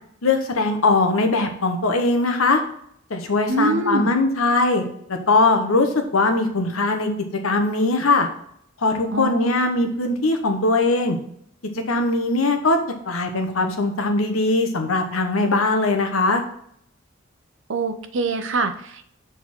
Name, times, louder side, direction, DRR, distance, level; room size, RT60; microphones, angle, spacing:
voice 1, 0.2-2.6 3.1-4.8 5.1-7.1 7.4-8.3 8.8-11.2 11.9-12.8 13.1-16.4, left 2 dB, 85° left, 5 dB, 1.1 m, -20 dB
voice 2, 3.5-4.1 9.1-9.5 17.7-19.1, right 2 dB, 65° right, 8 dB, 0.7 m, -24 dB
6.6 x 3.9 x 4.4 m, 0.69 s
head